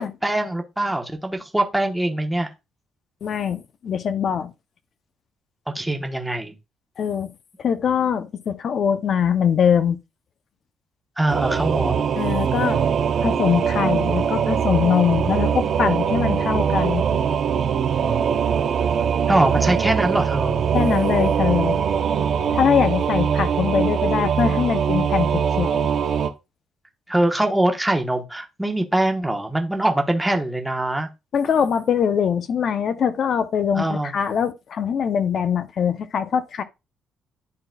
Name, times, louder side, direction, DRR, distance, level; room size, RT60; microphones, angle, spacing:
voice 1, 0.0-2.5 5.7-6.5 11.2-12.0 19.3-20.6 27.1-31.1 33.7-34.1, right 1 dB, 5° right, 1.0 m, -23 dB
voice 2, 3.2-4.5 7.0-7.3 7.6-10.0 12.2-12.8 13.2-17.0 20.7-21.8 22.5-25.9 31.3-36.6, left 7 dB, 50° left, 0.6 m, -22 dB
Singing / Musical instrument, 11.3-26.3, right 7 dB, 50° right, 0.7 m, -22 dB
11.5 x 3.9 x 2.2 m
cardioid pair, 140°, 0 cm